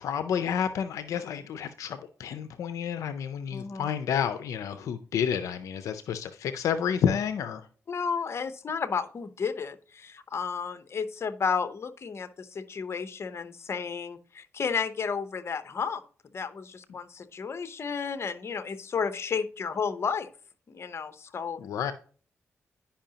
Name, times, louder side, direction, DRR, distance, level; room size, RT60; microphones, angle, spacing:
voice 1, 0.0-7.6 21.6-21.9, left 8 dB, 90° left, 11 dB, 0.5 m, -30 dB
voice 2, 3.5-3.9 7.9-16.0 16.3-20.3 20.7-21.7, left 6 dB, 55° left, 12 dB, 0.8 m, -32 dB
10.0 x 5.6 x 2.8 m, 0.43 s
cardioid pair, 60°, 5 cm